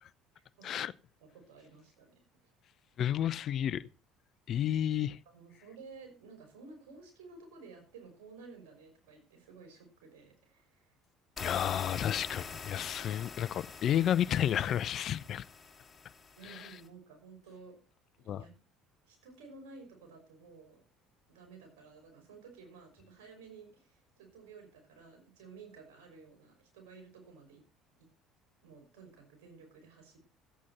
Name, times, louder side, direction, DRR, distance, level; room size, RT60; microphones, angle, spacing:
voice 1, 0.3-0.7 1.2-2.5 5.3-11.0 16.4-17.8 18.2-18.5 19.0-20.8 21.3-27.6 28.0-28.1 28.6-30.3, right 4 dB, 75° right, 5.6 m, -54 dB
voice 2, 3.0-3.8 4.5-5.2 11.4-15.4 16.5-16.7 18.3-18.4, left 10 dB, 55° left, 0.6 m, -31 dB
sound 1, 11.4-16.9, left 5 dB, 30° left, 3.0 m, -46 dB
14.5 x 8.6 x 4.1 m
hypercardioid pair, 65°, 0 cm